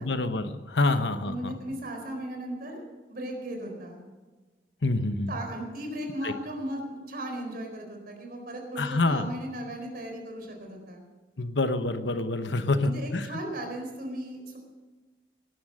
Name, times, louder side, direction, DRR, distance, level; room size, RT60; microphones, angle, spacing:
voice 1, 0.0-1.5 4.8-5.3 6.2-6.3 8.8-9.3 11.4-13.3, left 2 dB, 85° left, 10 dB, 1.0 m, -27 dB
voice 2, 0.8-4.0 5.3-11.0 12.8-14.6, right 1 dB, 55° right, 2 dB, 4.3 m, -37 dB
18.5 x 11.0 x 6.6 m, 1.3 s
head